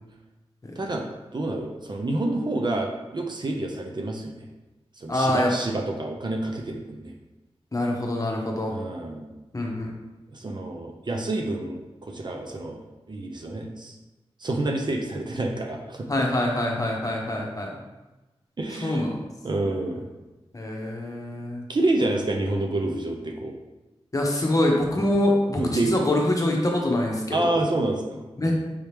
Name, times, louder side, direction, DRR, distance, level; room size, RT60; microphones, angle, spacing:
voice 1, 1.3-4.4 5.0-7.1 8.7-9.3 10.3-12.8 13.1-14.0 14.4-16.1 18.6-19.0 19.4-20.1 21.7-23.5 25.6-25.9 27.3-28.5, right 2 dB, 45° right, 2 dB, 0.6 m, -28 dB
voice 2, 5.1-5.5 7.7-8.8 9.5-9.9 16.1-17.7 18.8-19.2 20.5-21.6 24.1-27.6 28.4-28.5, left 1 dB, 35° left, 0 dB, 0.9 m, -25 dB
4.7 x 2.8 x 3.4 m, 1.1 s
wide cardioid pair, 70°, 10 cm